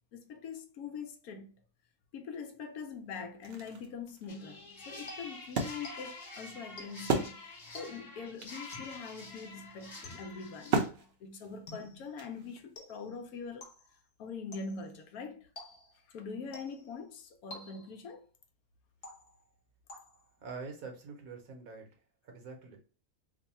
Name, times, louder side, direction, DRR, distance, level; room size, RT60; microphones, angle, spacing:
voice 1, 0.1-1.5 2.1-13.7 14.2-15.5 16.1-18.3, left 5 dB, 80° left, 1.1 m, -43 dB
Wood, 2.7-2.8 3.2-7.9 8.1-8.2 8.4-12.8, right 4 dB, 55° right, 0.8 m, -36 dB
sound 1, 4.3-10.9, left 3 dB, 30° left, 1.2 m, -47 dB
sound 2, 5.1-6.3 6.8-7.2 7.7-8.2 8.7-9.1 10.0-10.5 11.7-12.1 12.8-13.2 13.6-14.0 14.5-14.9 15.6-16.1 16.5-17.0 17.5-18.1 19.0-19.5 19.9-20.4, left 1 dB, 50° left, 1.1 m, -51 dB
voice 2, 20.4-21.9 22.2-22.8, right 4 dB, 70° right, 1.3 m, -45 dB
3.1 x 2.2 x 4.1 m
omnidirectional pair, 1.6 m